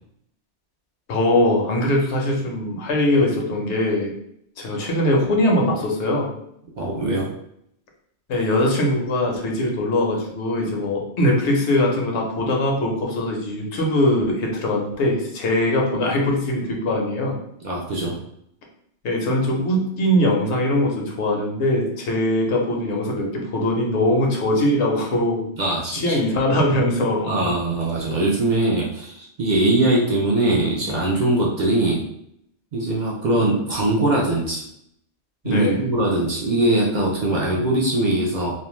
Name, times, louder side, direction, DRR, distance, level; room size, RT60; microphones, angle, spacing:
voice 1, 1.1-4.1 4.6-6.3 8.3-17.4 19.0-25.5 25.9-27.5 35.4-35.9, left 1 dB, 75° left, 0 dB, 0.9 m, -21 dB
voice 2, 6.8-7.3 17.6-18.2 25.6-26.2 27.2-32.0 32.7-34.6 35.4-38.5, right 2 dB, 55° right, -3 dB, 0.5 m, -21 dB
2.5 x 2.1 x 3.0 m, 0.73 s
omnidirectional pair, 1.2 m